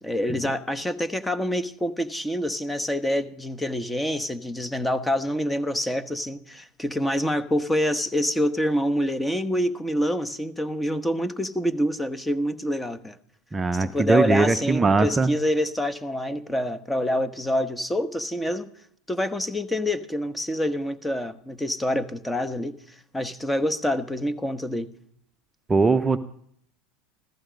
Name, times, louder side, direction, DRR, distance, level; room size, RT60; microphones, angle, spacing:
voice 1, 0.0-13.2 13.7-18.7 19.1-24.9, equal, 10° left, 12 dB, 1.1 m, -26 dB
voice 2, 13.5-15.3 25.7-26.2, right 3 dB, 15° right, 8 dB, 0.7 m, -20 dB
14.5 x 14.5 x 5.2 m, 0.64 s
supercardioid pair, 105°, 0 cm